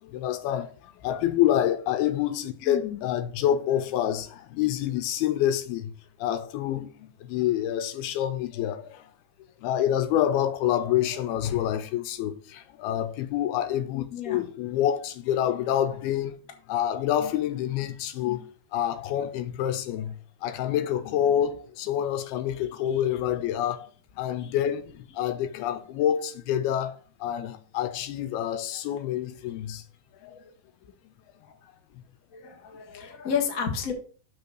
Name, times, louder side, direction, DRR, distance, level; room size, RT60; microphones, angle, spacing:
voice 1, 0.0-5.9 6.2-9.1 9.6-16.4 16.7-18.4 18.7-20.1 20.4-23.9 24.2-29.8 30.2-30.4 31.0-31.1, left 11 dB, 85° left, 2.8 m, -27 dB
voice 2, 2.6-3.0 14.1-14.4 22.5-22.6 22.9-23.0 24.4-24.5 30.3-30.4 31.5-31.6 32.3-33.9, left 7 dB, 60° left, 0.8 m, -32 dB
6.8 x 5.8 x 6.4 m
omnidirectional pair, 4.4 m